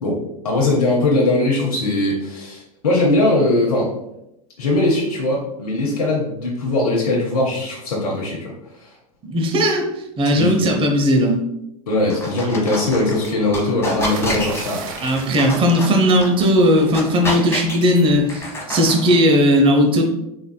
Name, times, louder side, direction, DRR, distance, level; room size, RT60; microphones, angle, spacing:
voice 1, 0.0-3.9 4.6-8.5 8.8-8.9 10.4-10.6 11.9-14.8, left 2 dB, 85° left, -3 dB, 0.8 m, -20 dB
voice 2, 9.2-9.9 10.2-11.4 15.0-20.0, equal, 30° right, 3 dB, 0.7 m, -17 dB
sound 1, 11.9-19.4, left 1 dB, 15° left, 1.0 m, -30 dB
sound 2, 14.0-16.8 18.0-18.3, right 6 dB, 60° right, 0.5 m, -34 dB
3.9 x 3.5 x 2.2 m, 0.84 s
hypercardioid pair, 90°, 19 cm